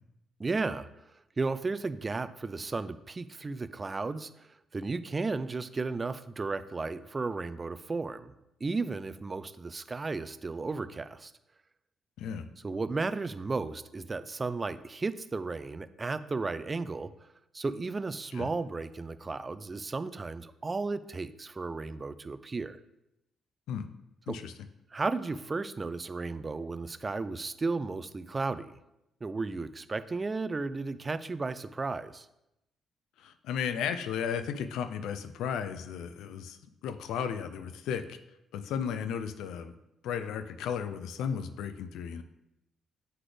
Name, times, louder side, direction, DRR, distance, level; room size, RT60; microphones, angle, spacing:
voice 1, 0.4-0.9 1.4-8.3 8.6-11.3 12.6-17.1 17.5-22.8 24.3-24.4 24.9-28.8 29.2-32.3, right 3 dB, 30° right, 13 dB, 0.3 m, -34 dB
voice 2, 33.2-38.2 38.5-39.8 40.0-42.2, left 7 dB, 85° left, 10 dB, 0.4 m, -34 dB
7.8 x 3.9 x 3.3 m, 0.87 s
cardioid pair, 90°, 0 cm